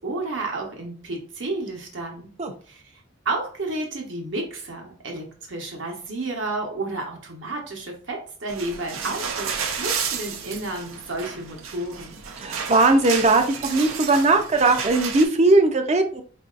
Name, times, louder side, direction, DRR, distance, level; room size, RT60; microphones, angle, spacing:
voice 1, 0.0-2.3 2.7-12.2, right 2 dB, 65° right, 1 dB, 1.0 m, -31 dB
sound 1, 8.5-15.3, right 6 dB, 90° right, 0.6 m, -31 dB
voice 2, 12.4-16.2, right 2 dB, 35° right, 6 dB, 0.5 m, -19 dB
4.4 x 2.7 x 2.4 m, 0.41 s
head